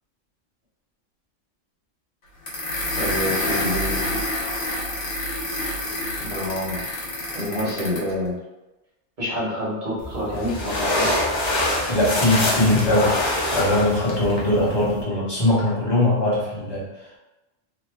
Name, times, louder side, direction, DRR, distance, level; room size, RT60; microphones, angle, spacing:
sound 1, 2.5-8.1, left 1 dB, 70° left, 1.2 m, -27 dB
voice 1, 2.9-4.2 6.2-6.8 7.3-8.4 9.2-11.1, left 1 dB, 40° right, -7 dB, 1.2 m, -28 dB
sound 2, 10.0-15.0, left 1 dB, 40° left, 0.4 m, -25 dB
voice 2, 11.8-13.2 13.5-16.8, left 1 dB, 20° left, -8 dB, 1.0 m, -21 dB
3.0 x 2.1 x 3.3 m, 1.0 s
omnidirectional pair, 1.3 m